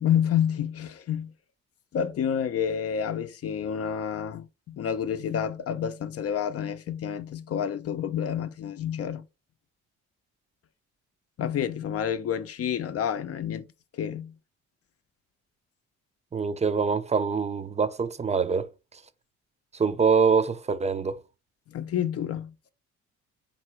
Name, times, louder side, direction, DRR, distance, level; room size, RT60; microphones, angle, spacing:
voice 1, 0.0-1.3 1.9-9.2 11.4-13.7 13.9-14.3 21.7-22.5, left 8 dB, 50° left, 0.6 m, -29 dB
voice 2, 16.3-18.7 19.8-21.2, right 5 dB, 20° right, 0.5 m, -24 dB
3.7 x 2.7 x 4.3 m
cardioid pair, 90°, 30 cm